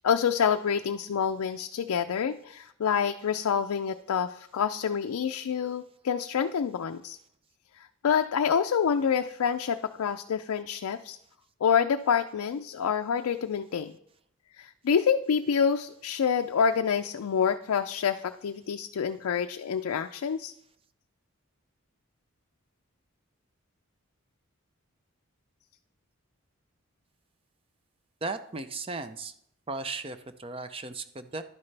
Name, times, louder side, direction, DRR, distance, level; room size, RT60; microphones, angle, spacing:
voice 1, 0.0-7.2 7.8-11.2 11.6-13.9 14.6-20.5, left 7 dB, 90° left, 7 dB, 0.4 m, -27 dB
voice 2, 28.2-29.3 29.7-31.4, right 3 dB, 25° right, 10 dB, 0.5 m, -36 dB
11.0 x 9.6 x 3.3 m, 0.70 s
head